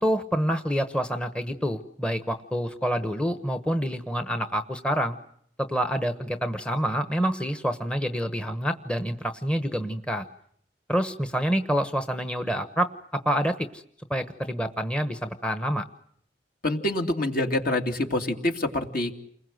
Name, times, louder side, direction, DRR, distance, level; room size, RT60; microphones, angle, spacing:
voice 1, 0.0-5.2 5.6-10.3 10.9-13.8 14.1-15.9, equal, 5° left, 8 dB, 1.1 m, -27 dB
voice 2, 16.6-19.1, left 1 dB, 55° left, 4 dB, 2.8 m, -26 dB
29.0 x 21.0 x 7.8 m, 0.68 s
head